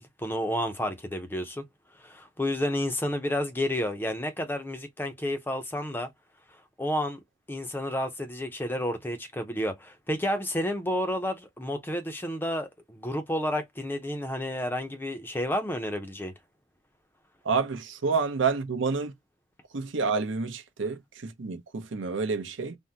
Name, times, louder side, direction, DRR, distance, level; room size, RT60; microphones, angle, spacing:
voice 1, 0.0-1.6 2.0-6.1 6.8-7.2 7.5-16.3, left 1 dB, 10° left, 0.5 m, -31 dB
voice 2, 17.4-19.1 19.7-22.8, right 4 dB, 80° right, 0.6 m, -29 dB
3.5 x 2.0 x 2.7 m
head